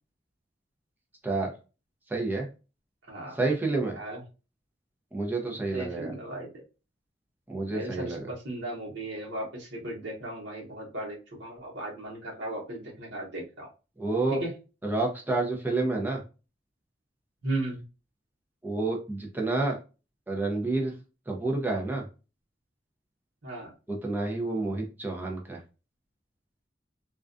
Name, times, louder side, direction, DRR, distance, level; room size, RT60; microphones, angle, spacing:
voice 1, 2.1-2.5 3.3-4.0 5.1-6.1 7.5-8.3 14.0-14.4 14.8-16.2 18.6-19.8 20.3-20.9 21.3-22.0 23.9-25.6, right 2 dB, 10° right, 0 dB, 0.5 m, -29 dB
voice 2, 3.1-3.4 3.9-4.2 5.7-6.6 7.7-13.7 14.3-14.5 17.4-17.8 23.4-23.7, right 1 dB, 75° right, -3 dB, 0.9 m, -36 dB
2.4 x 2.2 x 2.4 m, 0.33 s
head